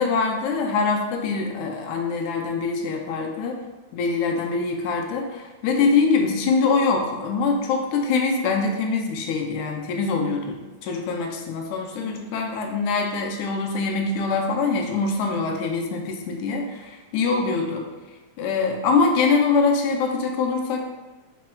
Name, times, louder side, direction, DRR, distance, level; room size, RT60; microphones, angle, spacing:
voice 1, 0.0-3.6 3.9-17.9 18.4-20.9, left 4 dB, 80° left, 2 dB, 1.9 m, -24 dB
5.0 x 4.2 x 2.3 m, 1.2 s
omnidirectional pair, 3.6 m